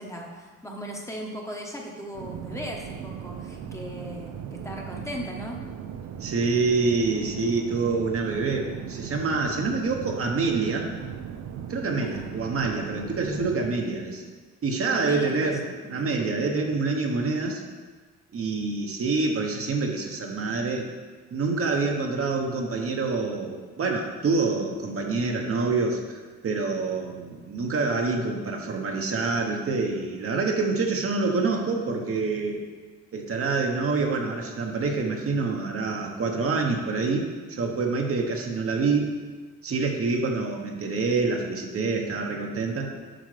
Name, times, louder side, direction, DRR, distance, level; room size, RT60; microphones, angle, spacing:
voice 1, 0.0-5.6 12.0-12.3 14.9-16.1, equal, 10° left, -1 dB, 1.0 m, -38 dB
sound 1, 2.1-13.7, right 8 dB, 65° right, 0.6 m, -38 dB
voice 2, 6.2-10.9 11.7-14.2 14.6-17.6 18.3-20.9 21.3-26.2 26.4-32.6 33.1-39.1 39.6-42.9, right 3 dB, 50° right, 1 dB, 1.0 m, -26 dB
7.8 x 5.7 x 3.3 m, 1.4 s
cardioid pair, 90°, 30 cm